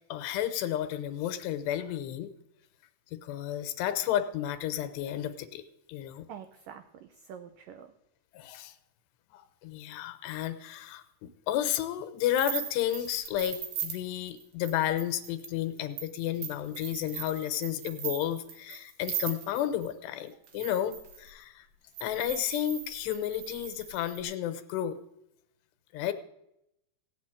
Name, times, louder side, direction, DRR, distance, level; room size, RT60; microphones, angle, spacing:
voice 1, 0.1-2.3 3.1-5.6 5.9-6.3 8.3-8.7 9.3-21.7 22.0-25.0 25.9-26.1, left 11 dB, 85° left, 9 dB, 3.0 m, -32 dB
voice 2, 6.3-7.9, right 8 dB, 90° right, 8 dB, 1.9 m, -46 dB
sound 1, 12.3-19.9 20.4-21.3 21.9-24.2, right 8 dB, 65° right, 2.8 m, -39 dB
16.5 x 6.4 x 8.8 m, 0.84 s
omnidirectional pair, 4.8 m